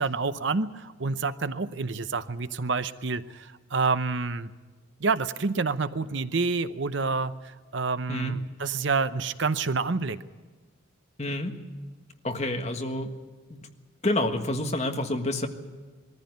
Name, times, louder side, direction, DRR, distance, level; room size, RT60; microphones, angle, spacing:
voice 1, 0.0-4.5 5.0-10.2, right 4 dB, 60° right, 12 dB, 0.7 m, -28 dB
voice 2, 11.2-11.6 12.2-13.1 13.5-13.7 14.0-15.5, left 1 dB, 35° left, 4 dB, 1.5 m, -28 dB
21.5 x 14.5 x 9.3 m, 1.4 s
head